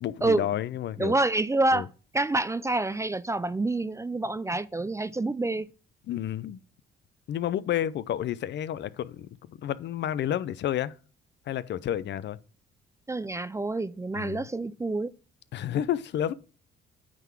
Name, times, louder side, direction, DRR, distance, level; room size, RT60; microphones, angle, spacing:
voice 1, 0.0-1.2 1.7-1.8 6.1-6.6 7.3-10.9 11.5-12.4 14.1-14.4 15.5-16.3, left 11 dB, 65° left, 0.5 m, -30 dB
voice 2, 1.0-1.9 2.1-5.7 13.1-15.1, right 2 dB, 15° right, 0.3 m, -27 dB
9.0 x 3.8 x 6.0 m
cardioid pair, 90°, 20 cm